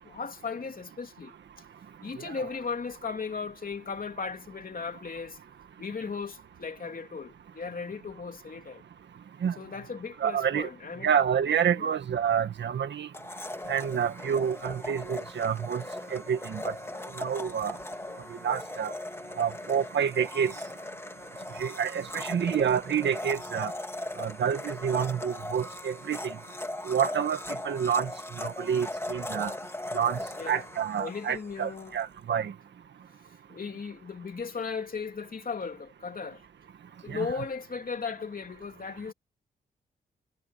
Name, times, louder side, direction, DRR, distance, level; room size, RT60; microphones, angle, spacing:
voice 1, 0.0-1.3 2.0-5.4 5.8-8.8 9.6-11.1 11.7-11.9 16.1-16.2 30.4-30.7 31.0-31.9 33.5-36.4 37.0-39.1, left 5 dB, 50° left, 3.0 m, -36 dB
voice 2, 10.2-10.7 11.0-13.1 13.7-15.8 16.1-16.7 17.2-17.7 18.4-18.9 19.4-20.5 21.6-23.7 24.2-26.2 26.9-27.4 27.6-28.1 28.4-29.5 29.9-30.2 30.5-32.5 37.1-37.3, right 8 dB, 90° right, 1.7 m, -28 dB
Domestic sounds home sounds, 13.1-31.9, left 1 dB, 15° left, 1.6 m, -39 dB
cardioid pair, 80°, 18 cm